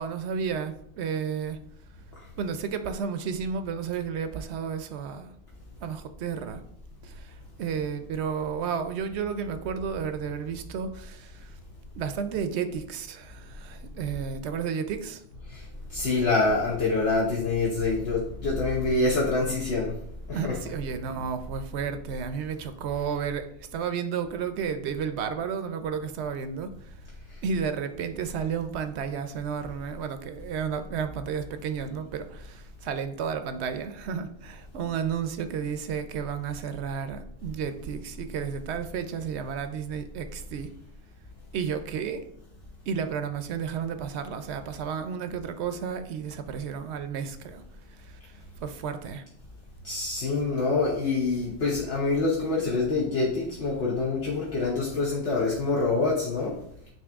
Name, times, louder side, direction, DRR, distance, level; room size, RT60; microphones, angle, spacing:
voice 1, 0.0-1.6 2.4-5.3 5.8-6.6 7.0-11.6 12.0-15.2 20.3-23.5 23.7-26.9 27.4-40.7 41.5-42.2 42.9-47.6 47.9-49.2, right 7 dB, 75° right, 9 dB, 0.9 m, -32 dB
voice 2, 15.9-19.9 20.3-20.5 49.8-56.5, left 3 dB, 65° left, -4 dB, 1.2 m, -26 dB
8.9 x 3.0 x 3.5 m, 0.71 s
omnidirectional pair, 1.1 m